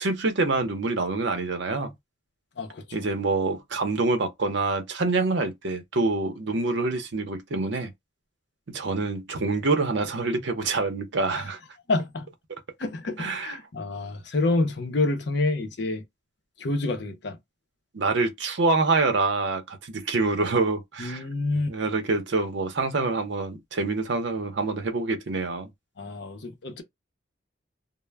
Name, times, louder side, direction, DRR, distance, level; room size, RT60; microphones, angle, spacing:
voice 1, 0.0-1.9 2.9-7.9 8.7-11.6 13.2-13.6 17.9-21.2 21.7-25.7, right 3 dB, 75° right, 0.6 m, -26 dB
voice 2, 2.6-3.1 11.3-11.5 11.9-12.3 12.8-16.0 16.6-17.4 21.0-21.8 26.0-26.8, left 2 dB, 65° left, 0.6 m, -28 dB
2.1 x 2.0 x 3.3 m
head